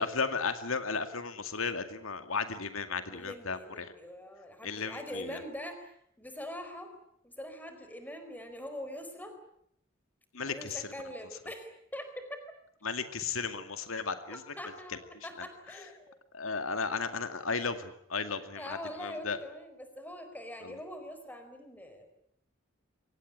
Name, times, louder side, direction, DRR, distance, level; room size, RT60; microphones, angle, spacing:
voice 1, 0.0-3.9 4.6-5.4 10.3-10.9 12.8-14.4 14.9-15.0 16.3-19.4 20.6-20.8, left 5 dB, 90° left, 8 dB, 2.2 m, -34 dB
voice 2, 3.1-6.9 7.2-9.3 10.5-12.4 14.3-16.2 18.6-22.1, left 1 dB, 10° left, 7 dB, 4.5 m, -43 dB
24.5 x 18.5 x 10.0 m, 0.72 s
head